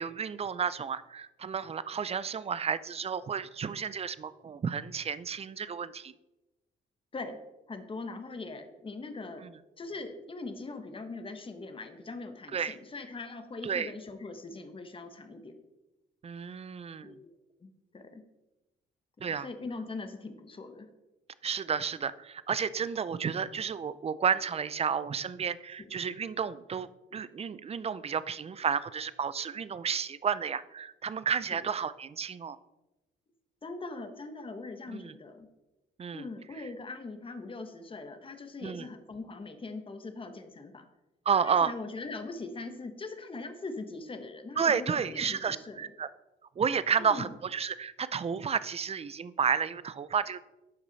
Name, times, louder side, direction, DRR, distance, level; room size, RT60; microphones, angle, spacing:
voice 1, 0.0-6.1 9.4-9.5 12.5-12.8 13.6-13.9 16.2-17.2 19.2-19.5 21.4-32.6 34.9-35.1 36.0-36.3 36.6-36.7 38.6-38.9 41.3-41.7 44.6-46.1 46.6-50.4, right 6 dB, 30° right, 16 dB, 0.5 m, -31 dB
voice 2, 7.7-9.4 9.8-15.6 17.0-17.3 17.6-18.2 19.2-20.9 25.8-25.9 31.5-31.6 33.6-35.5 36.1-40.8 41.4-45.9 47.0-47.3, left 3 dB, 25° left, 7 dB, 1.1 m, -41 dB
11.5 x 4.8 x 4.0 m, 0.99 s
cardioid pair, 90°, 20 cm